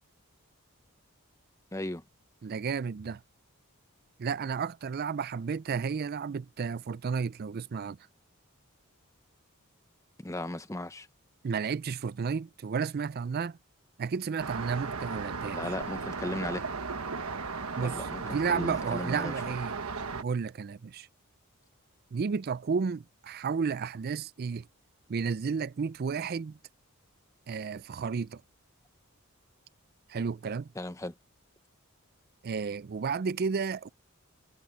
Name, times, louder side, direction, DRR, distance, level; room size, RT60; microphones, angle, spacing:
voice 1, 1.7-2.0 10.2-11.1 15.5-16.6 17.8-19.3 30.8-31.1, left 1 dB, 15° left, 0.8 m, -36 dB
voice 2, 2.4-3.2 4.2-8.0 11.4-13.6 14.0-15.6 17.8-19.7 20.1-21.1 22.1-24.7 25.1-26.6 27.5-28.4 30.1-30.7 32.4-33.9, right 5 dB, 45° right, 0.4 m, -32 dB
Traffic noise roadway noise, 14.4-20.2, right 4 dB, 80° right, 1.3 m, -36 dB
head